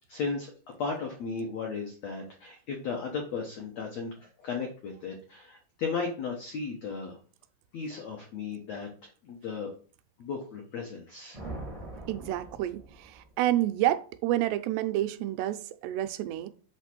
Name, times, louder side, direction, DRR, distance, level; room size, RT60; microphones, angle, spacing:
voice 1, 0.1-7.2 7.7-9.7 10.2-11.4, left 5 dB, 85° left, 1.4 m, -35 dB
sound 1, 11.3-13.3, right 2 dB, 65° right, 0.3 m, -42 dB
voice 2, 12.1-16.5, right 14 dB, 85° right, 2.7 m, -29 dB
8.0 x 3.5 x 6.0 m
omnidirectional pair, 4.8 m